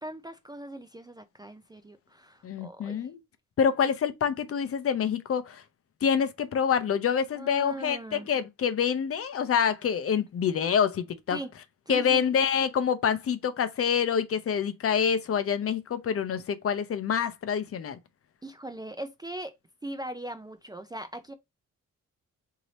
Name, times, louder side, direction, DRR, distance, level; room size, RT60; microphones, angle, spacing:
voice 1, 0.0-3.1 7.3-8.3 11.3-11.5 11.9-12.2 18.4-19.5 19.8-21.3, right 1 dB, 15° right, 0.4 m, -40 dB
voice 2, 2.4-3.2 3.6-5.6 6.0-11.4 11.9-18.0, left 7 dB, 45° left, 0.6 m, -26 dB
3.2 x 2.7 x 4.0 m
cardioid pair, 125°, 31 cm